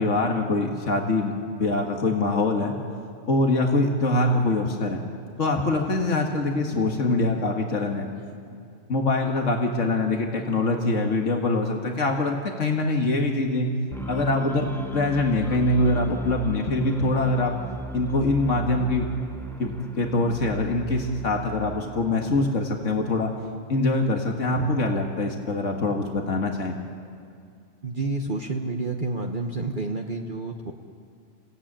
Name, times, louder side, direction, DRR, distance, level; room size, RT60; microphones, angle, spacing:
voice 1, 0.0-2.7 3.3-5.0 5.4-8.1 8.9-13.7 14.1-14.7 14.9-17.5 17.9-19.1 19.6-23.3 23.7-26.7, left 2 dB, 85° left, 2 dB, 2.1 m, -24 dB
sound 1, 13.9-23.5, right 2 dB, ahead, 0.7 m, -37 dB
voice 2, 27.8-30.7, right 3 dB, 45° right, 2 dB, 1.2 m, -29 dB
29.0 x 16.5 x 8.9 m, 2.4 s
omnidirectional pair, 1.2 m